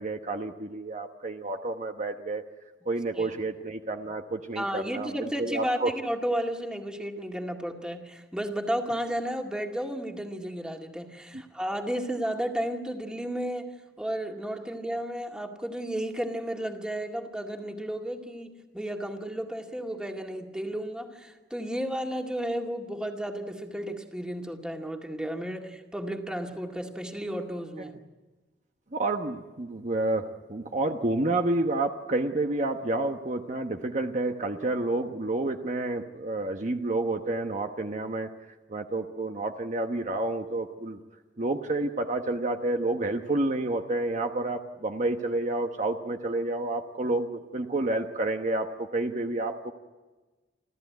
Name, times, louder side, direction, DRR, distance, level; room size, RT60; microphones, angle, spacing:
voice 1, 0.0-2.4 2.9-5.9 28.9-38.3 38.7-41.0 41.4-49.7, right 2 dB, 45° right, 5 dB, 1.1 m, -29 dB
voice 2, 4.6-28.0, equal, 5° right, 2 dB, 2.1 m, -33 dB
29.5 x 14.0 x 9.4 m, 1.2 s
head